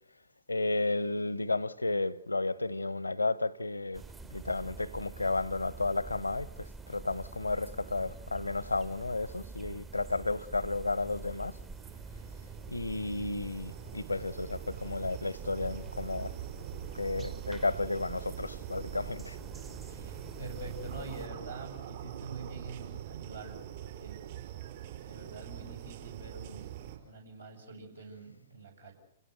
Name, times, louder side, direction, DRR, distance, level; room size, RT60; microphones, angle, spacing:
voice 1, 0.5-4.0 4.3-11.6 12.7-16.3 16.9-19.4, left 2 dB, 80° left, 0.9 m, -33 dB
sound 1, 3.9-21.3, right 3 dB, 15° right, 0.8 m, -47 dB
sound 2, 11.1-27.0, right 12 dB, 45° right, 5.0 m, -44 dB
voice 2, 19.5-24.2 25.0-26.8 27.0-28.9, right 2 dB, 80° right, 6.9 m, -46 dB
Scratching (performance technique), 20.6-23.1, right 7 dB, 60° right, 2.5 m, -47 dB
28.0 x 16.5 x 8.0 m
figure-of-eight pair, 110°, 0 cm